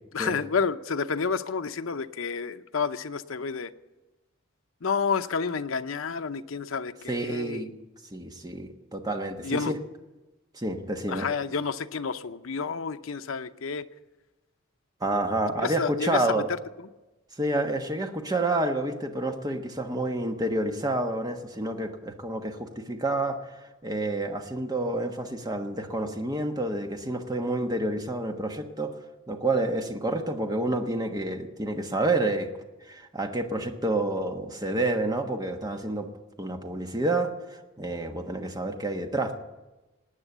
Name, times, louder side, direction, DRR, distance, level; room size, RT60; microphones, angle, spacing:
voice 1, 0.1-3.7 4.8-7.6 9.4-9.8 11.1-13.8 15.5-16.9, left 5 dB, 80° left, 9 dB, 0.7 m, -30 dB
voice 2, 7.1-7.7 8.1-9.8 10.5-11.3 15.0-16.5 17.4-23.5 23.8-28.9 29.3-32.5 32.9-36.1 36.4-39.4, right 2 dB, 20° right, 5 dB, 1.3 m, -29 dB
18.5 x 9.1 x 8.0 m, 1.1 s
head